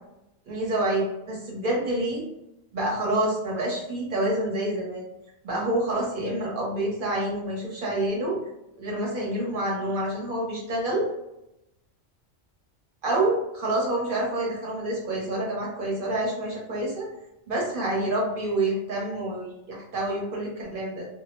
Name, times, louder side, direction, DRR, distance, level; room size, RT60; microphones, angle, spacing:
voice 1, 0.5-2.2 2.7-5.1 5.4-8.4 8.8-11.1 13.0-17.1 17.5-21.1, right 1 dB, 45° right, -3 dB, 0.9 m, -27 dB
2.4 x 2.0 x 3.0 m, 0.87 s
omnidirectional pair, 1.3 m